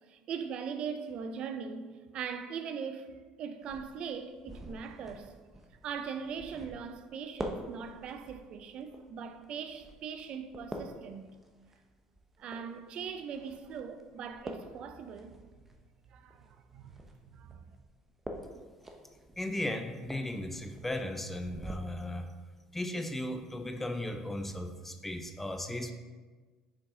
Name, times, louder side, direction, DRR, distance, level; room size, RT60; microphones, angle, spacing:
voice 1, 0.1-5.3 5.8-11.3 12.4-15.4 16.1-16.5 16.7-17.0 17.3-17.6, right 6 dB, 55° right, 0.5 m, -40 dB
sound 1, 3.6-21.7, right 1 dB, 15° right, 0.9 m, -47 dB
voice 2, 19.4-22.3 22.7-25.9, left 1 dB, 10° left, 0.6 m, -36 dB
6.4 x 4.7 x 3.7 m
supercardioid pair, 80°, 2 cm